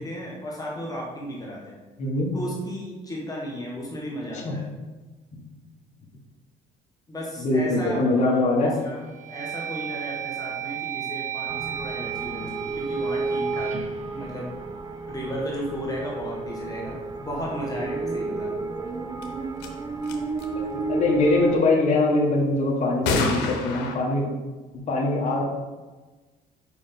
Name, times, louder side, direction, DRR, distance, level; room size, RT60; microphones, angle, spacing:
voice 1, 0.0-1.8 2.3-4.7 7.1-9.0 9.3-13.8 14.1-14.5 15.1-18.6, equal, 20° left, -3 dB, 1.6 m, -34 dB
voice 2, 2.0-2.3 4.3-4.6 7.4-8.7 20.6-24.3 24.9-25.4, left 2 dB, 45° left, -2 dB, 1.6 m, -22 dB
sound 1, 8.0-8.4 8.9-15.1, right 10 dB, 45° right, 1.0 m, -35 dB
sound 2, 11.5-21.6, right 3 dB, 25° right, 0.5 m, -32 dB
sound 3, 19.2-19.3 19.6-19.7 20.0-20.4 23.0-23.9, left 4 dB, 90° left, 1.0 m, -26 dB
5.4 x 5.2 x 5.2 m, 1.3 s
cardioid pair, 110°, 17 cm